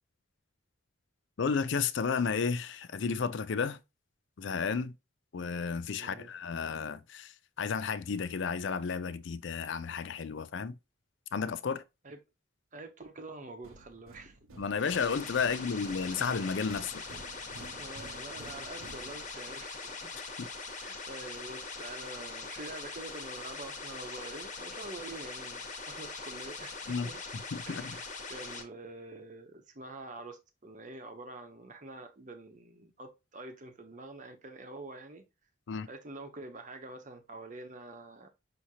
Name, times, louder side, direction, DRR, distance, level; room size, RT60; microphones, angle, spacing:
voice 1, 1.4-3.8 4.4-4.9 5.3-10.8 11.3-11.8 14.6-17.0 20.4-20.5 26.9-27.1 27.5-28.0 35.7-35.9, left 5 dB, 60° left, 0.4 m, -32 dB
voice 2, 6.0-6.3 12.0-12.2 12.7-14.4 15.4-15.7 17.8-20.1 20.7-27.2 27.7-35.2 35.9-38.3, right 2 dB, 35° right, 0.9 m, -46 dB
sound 1, 13.6-19.6, right 1 dB, 85° right, 0.9 m, -52 dB
sound 2, 14.8-28.6, left 4 dB, 35° left, 1.1 m, -42 dB
6.1 x 2.8 x 2.8 m
head